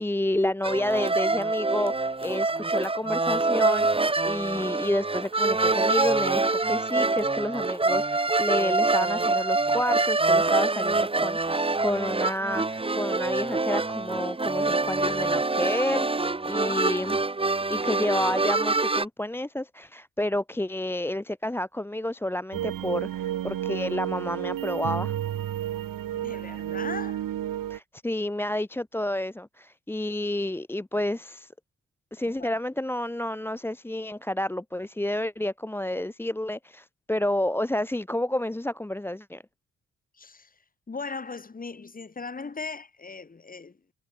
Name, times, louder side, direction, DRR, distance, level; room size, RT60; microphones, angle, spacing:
voice 1, 0.0-17.2 17.7-25.1 27.7-31.5 32.1-39.4, left 1 dB, 5° left, 1.0 m, -30 dB
sound 1, 0.6-19.1, right 3 dB, 15° right, 2.5 m, -25 dB
voice 2, 16.5-17.2 26.1-27.2 32.4-32.6 40.1-40.5 40.9-43.8, left 4 dB, 25° left, 4.0 m, -38 dB
sound 2, 22.5-27.8, right 11 dB, 85° right, 3.5 m, -31 dB
wide cardioid pair, 140°, 33 cm